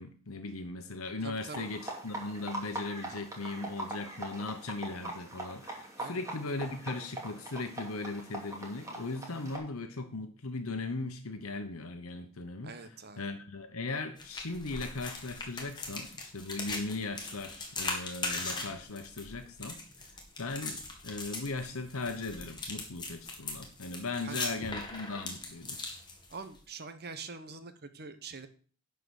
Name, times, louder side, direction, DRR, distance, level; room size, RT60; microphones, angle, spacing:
voice 1, 0.0-20.1 20.4-25.8, left 3 dB, 80° left, 7 dB, 1.0 m, -38 dB
voice 2, 1.2-1.7 6.0-6.2 12.6-13.2 24.2-24.6 26.3-28.5, right 4 dB, 50° right, 10 dB, 1.0 m, -44 dB
sound 1, 1.4-9.6, right 1 dB, 15° right, 2.5 m, -42 dB
sound 2, 14.2-26.6, left 3 dB, 20° left, 2.0 m, -40 dB
11.0 x 4.7 x 6.4 m, 0.42 s
head